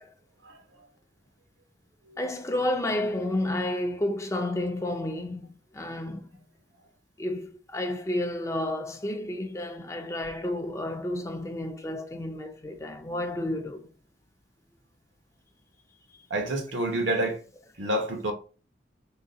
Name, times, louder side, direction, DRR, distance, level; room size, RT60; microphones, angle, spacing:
voice 1, 0.4-0.9 2.1-2.2 16.3-17.4 17.8-18.3, right 1 dB, 90° right, 1.0 m, -29 dB
voice 2, 2.2-6.3 7.2-13.9, left 1 dB, 15° left, 0.4 m, -31 dB
3.7 x 2.2 x 3.9 m
head